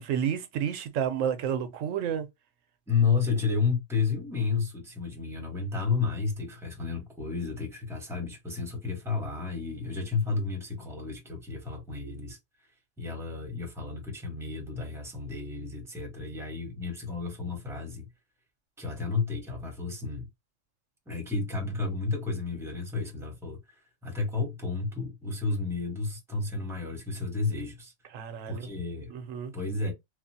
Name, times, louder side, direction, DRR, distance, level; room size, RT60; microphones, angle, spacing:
voice 1, 0.0-2.3 28.1-28.6 29.1-29.5, right 8 dB, 80° right, 1.0 m, -30 dB
voice 2, 2.9-12.4 13.0-18.1 18.8-20.3 21.1-27.9 28.5-29.1 29.5-29.9, left 4 dB, ahead, 0.9 m, -31 dB
3.0 x 2.3 x 2.6 m
omnidirectional pair, 1.3 m